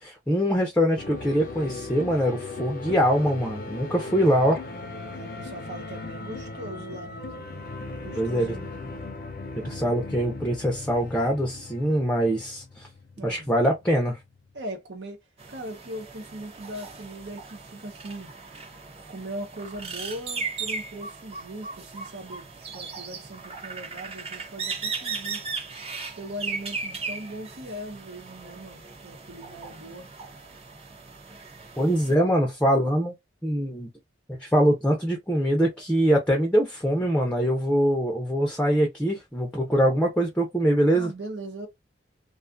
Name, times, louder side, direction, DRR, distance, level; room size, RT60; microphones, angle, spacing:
voice 1, 0.0-4.6 8.2-8.6 9.6-12.9 13.2-14.2 31.8-33.1 33.4-33.9 34.3-41.1, equal, 5° left, 0.5 m, -23 dB
sound 1, 1.0-14.6, left 3 dB, 55° left, 0.5 m, -38 dB
voice 2, 5.1-8.9 13.2-13.5 14.5-15.2 15.5-18.3 19.1-25.4 26.2-30.1 40.9-41.7, right 1 dB, 70° right, 0.9 m, -39 dB
sound 2, 15.4-32.2, right 4 dB, 35° right, 0.6 m, -37 dB
2.6 x 2.4 x 2.5 m
head